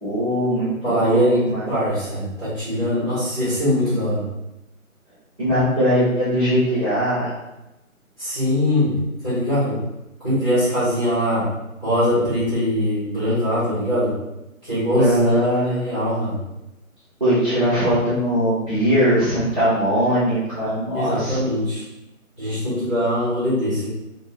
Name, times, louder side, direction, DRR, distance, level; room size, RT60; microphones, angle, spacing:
voice 1, 0.0-1.2 1.5-1.7 5.4-7.3 14.9-15.8 17.2-21.5, equal, 25° right, -15 dB, 0.8 m, -20 dB
voice 2, 0.8-4.2 8.2-8.9 9.2-9.8 10.2-11.5 11.8-14.1 14.6-15.1 15.7-16.4 20.9-21.8 22.4-23.9, equal, 20° left, -16 dB, 1.3 m, -22 dB
3.4 x 2.1 x 2.3 m, 0.95 s
figure-of-eight pair, 160°, 42 cm